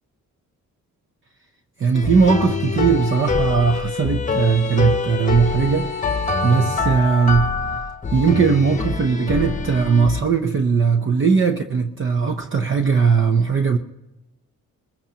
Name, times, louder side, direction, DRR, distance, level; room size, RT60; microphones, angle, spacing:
voice 1, 1.8-5.9 6.4-7.6 8.1-13.8, right 5 dB, 40° right, 0.7 m, -19 dB
sound 1, 1.9-10.2, left 4 dB, 25° left, 0.9 m, -25 dB
21.5 x 21.0 x 2.9 m
cardioid pair, 115°, 32 cm